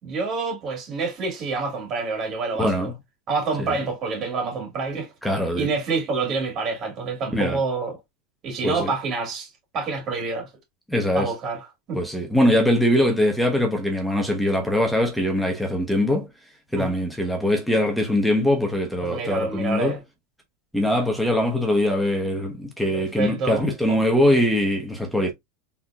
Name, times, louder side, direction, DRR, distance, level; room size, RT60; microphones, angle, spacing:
voice 1, 0.0-2.9 3.3-5.1 5.5-8.0 8.4-10.5 11.1-12.0 16.7-16.9 19.0-20.0 22.9-24.0, right 4 dB, 30° right, 2.6 m, -27 dB
voice 2, 2.6-2.9 3.6-3.7 5.2-5.7 7.3-7.6 8.6-8.9 10.9-11.3 11.9-16.3 16.7-20.0 20.7-25.3, left 1 dB, ahead, 1.1 m, -22 dB
4.3 x 3.9 x 2.3 m
supercardioid pair, 150°, 0 cm